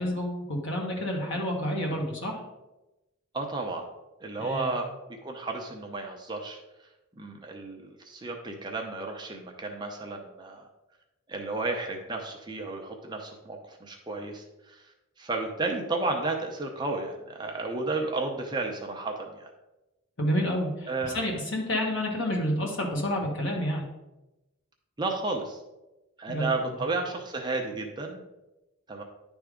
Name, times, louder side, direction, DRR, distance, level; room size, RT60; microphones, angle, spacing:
voice 1, 0.0-2.4 4.4-4.7 20.2-23.9 26.3-26.4, equal, 55° left, 0 dB, 1.6 m, -29 dB
voice 2, 3.3-3.8 4.2-4.9 5.2-6.6 7.2-10.7 11.3-14.8 15.2-19.5 20.9-21.2 21.8-21.9 25.0-25.6 26.2-28.2 28.9-29.0, right 3 dB, 20° right, 2 dB, 0.7 m, -32 dB
10.0 x 3.5 x 5.0 m, 0.99 s
head